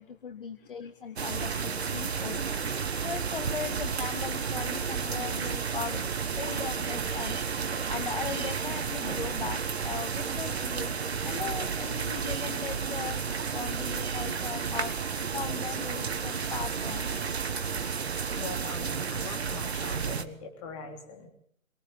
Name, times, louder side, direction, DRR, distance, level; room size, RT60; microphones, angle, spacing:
voice 1, 0.0-2.4 2.8-7.4 7.9-14.9 15.3-17.2, left 7 dB, 40° left, 13 dB, 0.9 m, -39 dB
voice 2, 0.6-0.9 17.9-21.3, left 4 dB, 20° left, 3 dB, 3.5 m, -43 dB
sound 1, 1.2-20.2, right 6 dB, 50° right, 1.4 m, -32 dB
23.5 x 17.5 x 7.1 m, 0.64 s
figure-of-eight pair, 150°, 42 cm